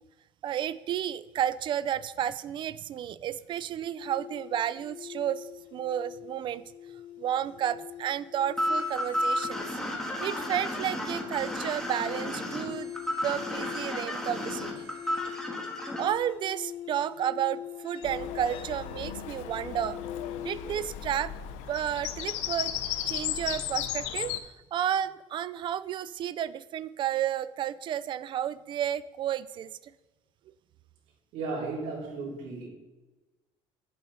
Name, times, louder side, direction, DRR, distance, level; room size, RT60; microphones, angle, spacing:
voice 1, 0.4-6.6 7.2-9.7 10.2-12.9 13.2-14.9 16.0-20.0 20.4-21.3 21.7-24.3 24.7-29.8, right 10 dB, 45° right, 17 dB, 0.3 m, -32 dB
sound 1, 4.0-20.6, left 10 dB, 50° left, 0.8 m, -43 dB
sound 2, 8.6-16.0, equal, 5° left, 1.7 m, -32 dB
Bird vocalization bird call bird song, 18.0-24.4, left 11 dB, 85° left, 0.7 m, -35 dB
voice 2, 31.3-32.7, right 3 dB, 75° right, -5 dB, 3.6 m, -35 dB
9.7 x 7.5 x 4.2 m, 1.1 s
cardioid pair, 130°, 11 cm